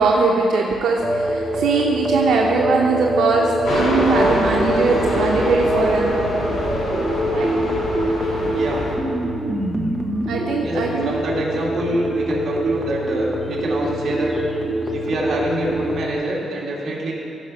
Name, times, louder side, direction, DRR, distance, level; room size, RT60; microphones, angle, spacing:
voice 1, 0.0-6.1 7.2-7.5 10.3-11.1, right 4 dB, 85° right, -2 dB, 0.9 m, -20 dB
sound 1, 1.0-16.1, right 1 dB, 10° right, 1.1 m, -24 dB
sound 2, 3.7-8.9, left 1 dB, 65° left, 2.6 m, -24 dB
voice 2, 8.5-8.9 10.6-10.8 11.0-14.4 14.9-17.1, right 1 dB, 45° right, -4 dB, 2.3 m, -26 dB
15.5 x 5.2 x 6.0 m, 2.7 s
wide cardioid pair, 160°, 0 cm